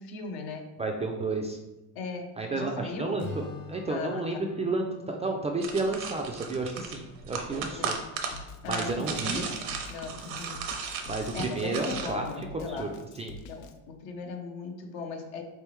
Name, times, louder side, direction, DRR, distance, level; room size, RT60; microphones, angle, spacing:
voice 1, 0.0-0.7 1.9-3.2 3.9-4.5 7.6-8.1 8.6-9.6 9.9-10.6 11.3-12.9 13.5-15.4, left 4 dB, 70° left, 4 dB, 0.9 m, -38 dB
voice 2, 0.8-1.6 2.4-3.4 3.7-7.9 8.7-9.4 11.1-12.3 12.8-12.9 13.2-13.3, right 3 dB, 20° right, 2 dB, 0.3 m, -31 dB
Acoustic guitar / Strum, 3.2-6.5, left 3 dB, 30° left, 0.7 m, -44 dB
sound 1, 5.6-12.1, right 6 dB, 85° right, 0.8 m, -36 dB
Drum kit, 8.3-13.7, left 3 dB, 90° left, 0.5 m, -46 dB
3.9 x 3.4 x 3.1 m, 1.0 s
supercardioid pair, 100°, 39 cm